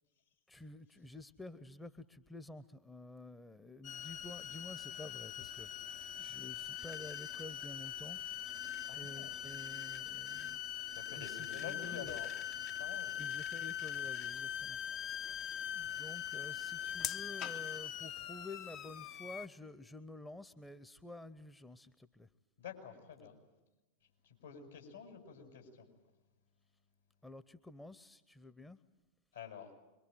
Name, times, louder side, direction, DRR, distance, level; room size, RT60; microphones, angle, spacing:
voice 1, 0.5-8.6 8.9-10.6 11.1-12.2 13.2-15.4 15.7-22.3 27.2-28.8, left 2 dB, 10° left, 13 dB, 0.9 m, -51 dB
sound 1, 3.8-19.5, left 9 dB, 40° left, 0.8 m, -42 dB
voice 2, 8.9-9.3 10.9-12.3 12.8-13.1 15.5-15.6 15.9-16.0 22.6-23.4 24.0-25.9 29.3-29.7, left 7 dB, 70° left, 4 dB, 7.4 m, -49 dB
26.0 x 23.5 x 9.3 m, 1.1 s
figure-of-eight pair, 90°, 0 cm